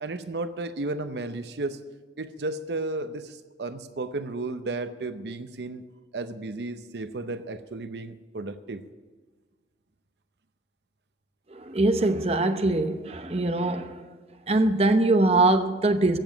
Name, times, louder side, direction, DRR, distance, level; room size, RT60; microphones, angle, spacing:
voice 1, 0.0-1.8 2.2-5.8 6.1-8.8, right 2 dB, 75° right, 0.7 m, -33 dB
voice 2, 11.5-14.0 14.5-16.2, right 2 dB, 35° right, 0.8 m, -22 dB
15.5 x 7.1 x 9.6 m
head